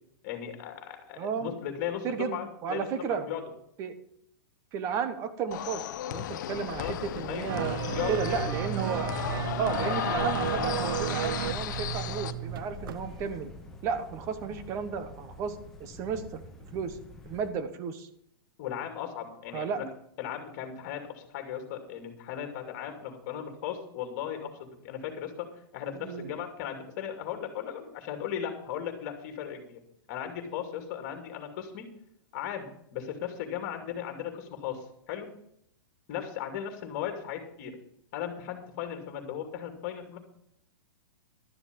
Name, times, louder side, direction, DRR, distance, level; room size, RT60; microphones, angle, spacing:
voice 1, 0.2-3.4 6.8-7.0 7.3-7.5 7.9-8.4 18.6-19.9 20.2-25.5 25.7-29.8 30.1-31.9 32.3-35.3 36.1-37.7 38.1-40.2, left 9 dB, 35° left, 5 dB, 2.6 m, -37 dB
voice 2, 1.2-1.5 2.0-2.4 2.6-3.2 3.8-3.9 4.7-7.8 8.1-9.1 9.5-13.5 13.8-16.4 16.7-17.0 17.3-18.1 19.5-19.8 25.9-26.3, right 6 dB, 25° right, 11 dB, 1.1 m, -33 dB
sound 1, 5.5-12.3, left 12 dB, 55° left, 0.8 m, -34 dB
sound 2, 6.5-17.5, left 2 dB, 5° left, 1.6 m, -44 dB
sound 3, 7.5-13.0 13.3-13.4, right 11 dB, 70° right, 0.7 m, -33 dB
12.5 x 7.1 x 6.9 m, 0.73 s
hypercardioid pair, 165°, 12 cm